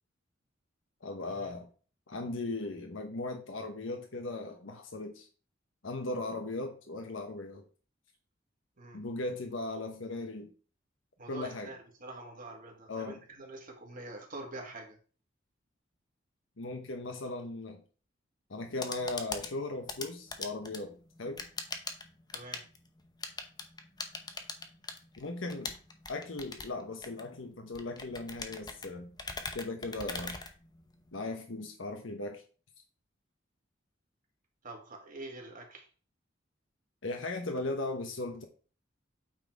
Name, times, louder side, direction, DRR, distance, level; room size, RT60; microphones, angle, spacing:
voice 1, 1.0-1.7 2.1-5.3 5.8-7.6 8.9-10.5 11.3-11.7 12.9-13.2 16.6-17.8 18.5-21.4 25.2-25.8 26.1-29.1 29.5-30.4 31.1-32.4 37.0-38.5, left 2 dB, 85° left, 4 dB, 1.0 m, -38 dB
voice 2, 11.2-15.0 22.3-22.6 34.6-35.9, right 2 dB, 45° right, 1 dB, 2.1 m, -45 dB
sound 1, 18.5-31.2, left 3 dB, 20° left, 0.9 m, -42 dB
8.8 x 4.1 x 4.7 m, 0.39 s
head